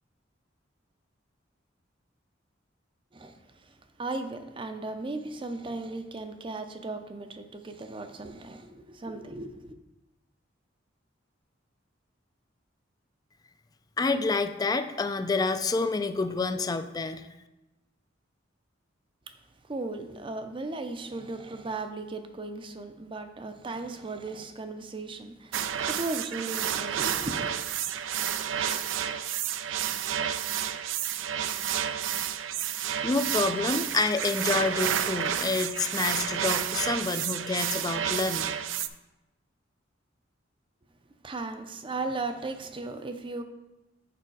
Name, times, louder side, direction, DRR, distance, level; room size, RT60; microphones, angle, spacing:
voice 1, 3.1-9.8 19.3-19.4 19.6-27.6 41.2-43.4, right 3 dB, 25° right, 0.5 m, -36 dB
voice 2, 14.0-17.3 33.0-38.5, left 3 dB, 20° left, 0.3 m, -28 dB
sound 1, 25.5-38.9, right 9 dB, 80° right, 0.4 m, -30 dB
6.8 x 4.8 x 4.7 m
head